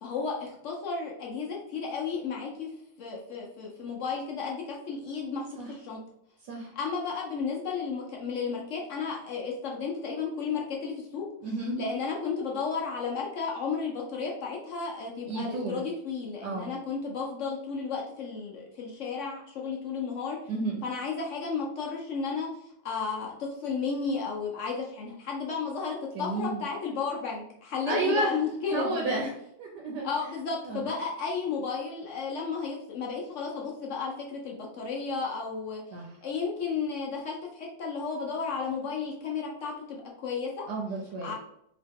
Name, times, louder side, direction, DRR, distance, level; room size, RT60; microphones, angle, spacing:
voice 1, 0.0-2.7 3.0-6.0 6.8-11.3 11.8-20.4 20.8-22.5 22.8-29.0 30.0-35.8 36.2-40.7 41.2-41.3, left 5 dB, 70° left, -2 dB, 0.7 m, -33 dB
voice 2, 11.4-11.9 15.2-15.8 16.4-16.7 20.5-20.8 26.1-26.6 27.9-28.4 28.7-29.3 29.6-30.1 30.6-30.9 35.9-36.1 40.7-41.3, right 2 dB, 75° right, -1 dB, 1.2 m, -31 dB
2.9 x 2.8 x 3.5 m, 0.74 s
omnidirectional pair, 1.9 m